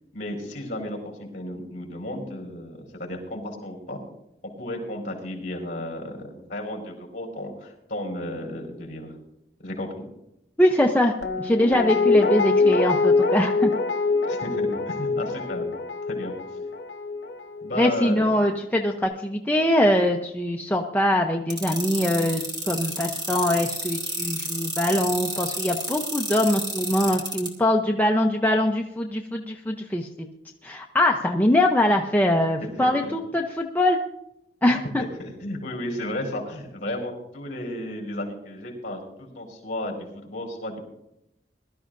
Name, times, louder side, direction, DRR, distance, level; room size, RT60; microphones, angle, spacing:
voice 1, 0.1-4.0 4.6-9.1 9.6-9.9 14.3-15.7 16.1-16.3 17.6-18.2 32.8-33.1 35.2-40.8, left 1 dB, 50° left, 1 dB, 4.7 m, -33 dB
voice 2, 10.6-13.7 17.8-30.3 30.6-34.0 34.6-35.0, left 1 dB, 10° left, 1 dB, 0.7 m, -23 dB
Guitar, 11.2-18.2 18.6-18.7, left 4 dB, 75° left, 1.3 m, -24 dB
sound 1, 21.5-27.5, right 1 dB, 25° right, 2.5 m, -30 dB
22.0 x 13.0 x 2.6 m, 0.85 s
head